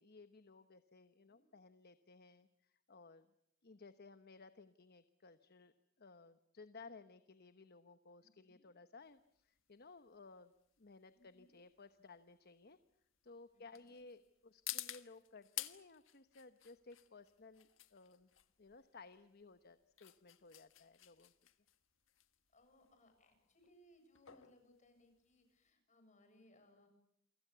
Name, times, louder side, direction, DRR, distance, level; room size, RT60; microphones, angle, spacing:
voice 1, 0.0-3.3 3.6-10.5 10.8-12.8 13.2-18.3 18.6-21.3, left 3 dB, 55° left, 11 dB, 1.1 m, -59 dB
voice 2, 8.2-8.6 11.1-11.5 13.5-13.9 22.5-26.9, left 1 dB, 40° left, 6 dB, 7.4 m, -68 dB
sound 1, 9.0-25.7, left 14 dB, 85° left, 1.5 m, -52 dB
28.5 x 25.5 x 6.9 m, 0.72 s
head